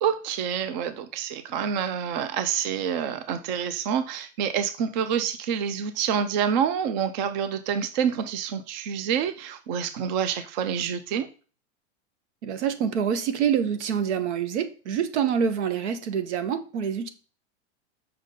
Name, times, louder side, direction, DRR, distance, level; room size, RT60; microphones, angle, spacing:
voice 1, 0.0-11.3, right 8 dB, 40° right, 0.6 m, -27 dB
voice 2, 12.4-17.1, right 8 dB, 80° right, 1.4 m, -26 dB
6.9 x 5.4 x 3.8 m
supercardioid pair, 170°, 34 cm